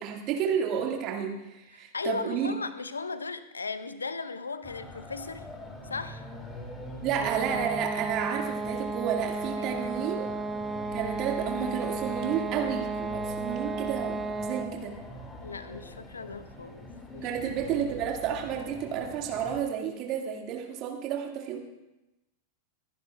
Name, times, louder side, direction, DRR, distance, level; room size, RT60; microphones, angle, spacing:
voice 1, 0.0-2.6 7.0-10.3 10.9-15.0 17.2-21.6, right 8 dB, 40° right, 2 dB, 1.9 m, -31 dB
voice 2, 1.7-5.5 5.8-6.2 9.6-9.9 15.4-17.3, left 4 dB, 75° left, 14 dB, 0.6 m, -37 dB
sound 1, 4.6-19.6, left 2 dB, 15° left, 2.4 m, -44 dB
sound 2, 7.2-14.9, right 3 dB, 10° right, 0.7 m, -33 dB
25.0 x 11.0 x 2.3 m, 1.0 s
figure-of-eight pair, 90°, 0 cm